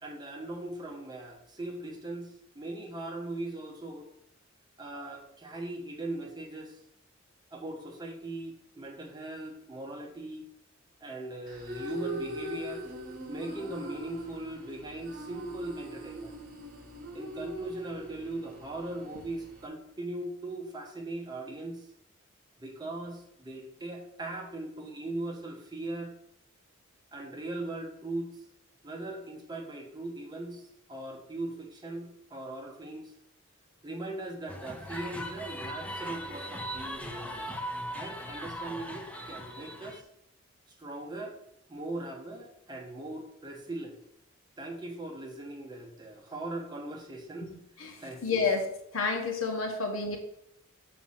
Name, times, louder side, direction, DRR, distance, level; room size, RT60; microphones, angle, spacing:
voice 1, 0.0-4.1 4.8-6.8 7.5-10.5 11.0-12.9 13.3-16.4 17.1-21.8 22.6-26.1 27.1-28.4 28.8-33.1 33.8-37.5 37.9-40.0 40.8-41.4 41.7-44.0 44.6-47.5 48.0-48.4, right 2 dB, 20° right, 1 dB, 1.1 m, -39 dB
sound 1, 11.5-19.7, right 1 dB, 45° right, 1.4 m, -41 dB
sound 2, 34.5-40.0, equal, 5° left, 0.6 m, -39 dB
voice 2, 47.8-48.7 48.9-50.2, left 4 dB, 85° left, 3 dB, 1.4 m, -30 dB
7.0 x 4.2 x 5.6 m, 0.75 s
head